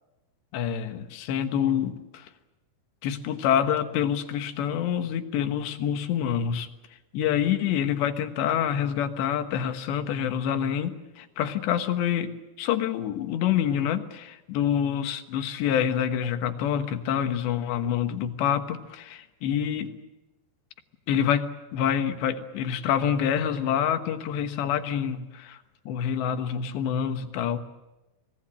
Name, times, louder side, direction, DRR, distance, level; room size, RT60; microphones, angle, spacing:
voice 1, 0.5-2.3 3.0-6.7 7.1-12.3 12.6-20.0 21.1-21.5 21.7-25.6 25.9-27.6, left 9 dB, 85° left, 8 dB, 3.6 m, -27 dB
25.0 x 18.5 x 8.8 m, 1.0 s
omnidirectional pair, 4.9 m